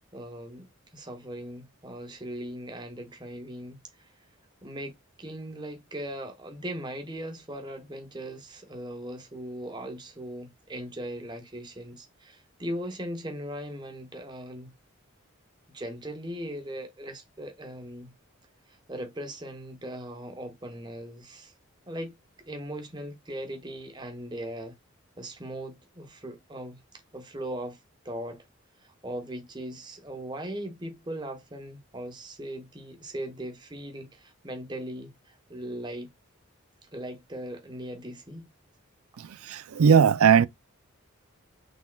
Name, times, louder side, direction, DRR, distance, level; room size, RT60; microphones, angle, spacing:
voice 1, 0.1-3.8 4.6-14.7 15.7-18.1 18.9-21.5 21.9-22.1 22.5-24.7 25.2-26.8 27.1-27.8 28.0-28.4 28.8-36.1 36.9-38.5, right 1 dB, 20° right, 1.0 m, -39 dB
voice 2, 39.5-40.5, right 7 dB, 80° right, 0.4 m, -18 dB
6.2 x 3.6 x 2.3 m
head